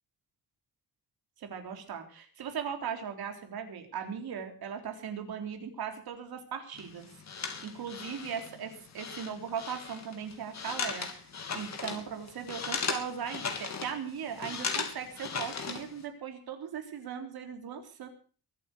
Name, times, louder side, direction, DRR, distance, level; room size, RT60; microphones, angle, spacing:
voice 1, 1.4-7.1 7.6-11.2 11.5-18.1, right 7 dB, 90° right, 5 dB, 3.8 m, -38 dB
sound 1, 6.7-16.0, left 5 dB, 50° left, 3.2 m, -37 dB
22.5 x 8.5 x 6.8 m, 0.41 s
wide cardioid pair, 160°, 36 cm